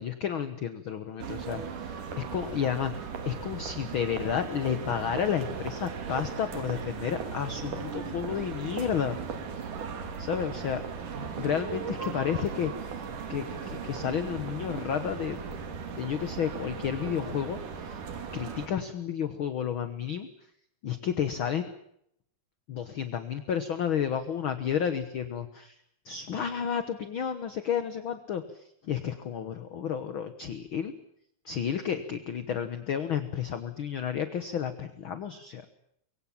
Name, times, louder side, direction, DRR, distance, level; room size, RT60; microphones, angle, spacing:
voice 1, 0.0-9.2 10.2-10.8 11.4-15.6 15.9-18.0 18.3-20.3 20.8-21.7 22.7-25.8 26.1-30.9 31.5-35.6, left 8 dB, 55° left, 10 dB, 1.6 m, -31 dB
sound 1, 1.2-18.7, right 6 dB, 85° right, 4.0 m, -37 dB
25.5 x 22.5 x 7.3 m, 0.74 s
omnidirectional pair, 3.6 m